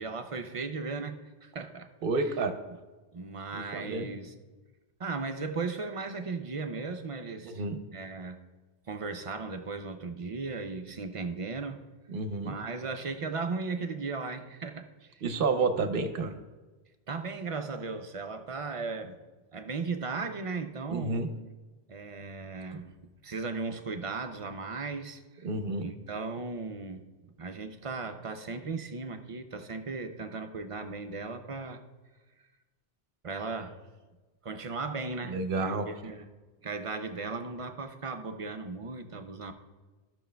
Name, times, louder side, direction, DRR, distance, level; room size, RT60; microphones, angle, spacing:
voice 1, 0.0-1.9 3.1-4.3 5.0-7.6 7.9-8.4 8.9-11.8 12.4-15.2 15.7-15.8 17.1-19.2 19.5-21.2 21.9-22.9 23.2-25.5 25.8-27.1 27.4-31.8 33.2-33.8 34.4-36.2 36.6-39.5, right 4 dB, 45° right, 7 dB, 0.5 m, -36 dB
voice 2, 2.0-2.6 3.5-4.1 7.4-7.8 12.1-12.5 15.2-16.3 20.9-21.3 25.4-25.9 35.2-35.9, right 3 dB, 60° right, 8 dB, 0.9 m, -30 dB
14.0 x 6.1 x 2.2 m, 1.2 s
omnidirectional pair, 1.1 m